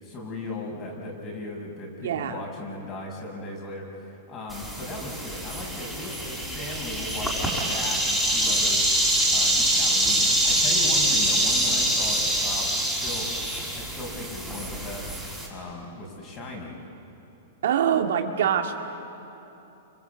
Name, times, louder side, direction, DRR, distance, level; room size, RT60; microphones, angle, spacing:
voice 1, 0.0-8.9 9.3-13.3 13.7-15.1 15.5-16.8, left 2 dB, 30° left, 0 dB, 6.2 m, -37 dB
voice 2, 2.0-2.5 17.6-19.1, right 8 dB, 75° right, 4 dB, 2.0 m, -25 dB
sound 1, 4.5-15.5, right 1 dB, 5° left, 5.4 m, -25 dB
29.0 x 25.5 x 8.2 m, 3.0 s
hypercardioid pair, 145°, 0 cm